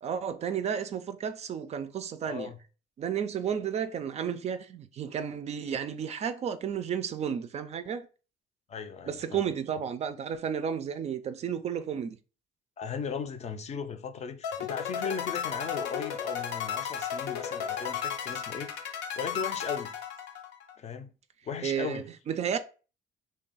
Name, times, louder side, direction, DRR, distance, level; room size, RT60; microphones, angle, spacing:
voice 1, 0.0-2.5 3.0-8.1 9.1-12.2 21.6-22.6, right 8 dB, 40° right, 0.3 m, -32 dB
voice 2, 2.3-2.6 8.7-9.4 12.8-20.0 20.8-21.1 21.5-22.1, left 6 dB, 40° left, 0.4 m, -37 dB
sound 1, 14.4-20.7, left 8 dB, 90° left, 0.5 m, -34 dB
3.2 x 2.3 x 3.9 m
cardioid pair, 110°, 17 cm